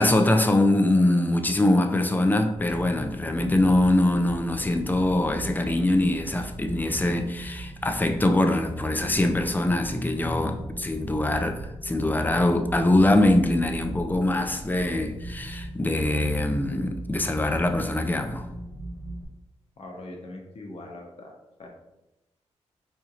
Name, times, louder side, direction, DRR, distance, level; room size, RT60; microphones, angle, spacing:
voice 1, 0.0-18.5, left 1 dB, 15° left, 5 dB, 0.5 m, -23 dB
sound 1, 2.5-19.3, right 1 dB, 80° right, 1.5 m, -39 dB
voice 2, 19.8-21.3 21.6-21.7, left 2 dB, 60° left, 0 dB, 0.8 m, -41 dB
4.3 x 2.9 x 2.4 m, 0.92 s
cardioid pair, 65°, 12 cm